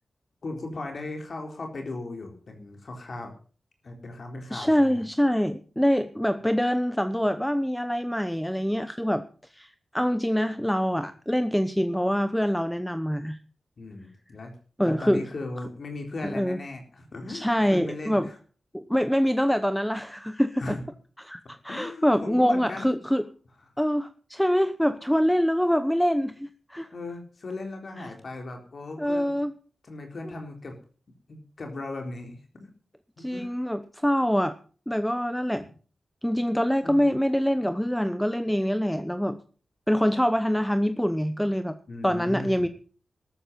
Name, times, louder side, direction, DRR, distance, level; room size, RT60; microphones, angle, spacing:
voice 1, 0.4-3.3 3.8-5.0 13.8-14.6 14.8-18.4 20.6-20.8 21.7-22.9 26.9-29.4 29.8-30.8 31.3-32.7 33.2-33.5 36.8-37.0 41.9-42.7, left 2 dB, 55° left, 3 dB, 4.0 m, -37 dB
voice 2, 4.5-9.2 9.5-13.4 14.8-15.3 16.3-16.6 17.3-18.3 18.7-20.8 21.2-23.3 23.8-26.9 28.0-28.1 29.0-29.5 33.2-34.6 34.9-35.6 36.2-39.4 39.9-41.8 42.0-42.7, equal, 5° left, 11 dB, 0.9 m, -25 dB
13.5 x 13.5 x 5.5 m, 0.40 s
wide cardioid pair, 95°, 0 cm